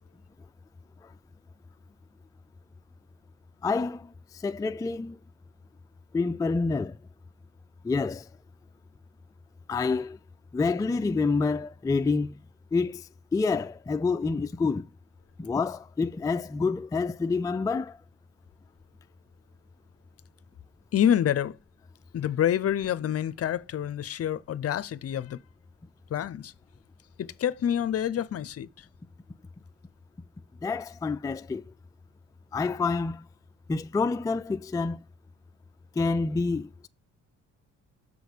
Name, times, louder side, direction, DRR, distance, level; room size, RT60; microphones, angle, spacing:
voice 1, 3.6-4.1 4.4-5.2 6.1-6.9 7.8-8.2 9.7-10.2 10.5-12.4 12.7-13.0 13.3-14.8 15.4-18.0 30.6-31.6 32.5-33.2 33.7-35.0 36.0-36.9, left 4 dB, 10° left, 0.4 m, -27 dB
voice 2, 20.9-21.6 22.1-25.4 26.1-26.5 27.2-28.8, left 10 dB, 50° left, 0.7 m, -27 dB
6.3 x 5.3 x 5.1 m
cardioid pair, 90°, 30 cm